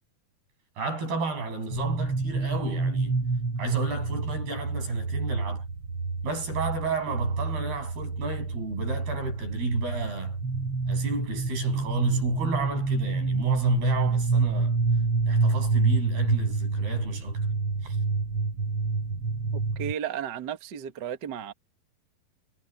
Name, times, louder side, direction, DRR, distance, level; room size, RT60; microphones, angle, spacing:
voice 1, 0.8-3.2 3.6-5.6 6.2-10.4 10.9-14.8 15.3-17.5 17.8-18.0, right 3 dB, 85° right, 9.6 m, -31 dB
sound 1, 1.7-19.9, right 3 dB, 35° right, 4.7 m, -28 dB
voice 2, 19.5-21.5, right 9 dB, 65° right, 1.0 m, -34 dB
omnidirectional pair, 4.4 m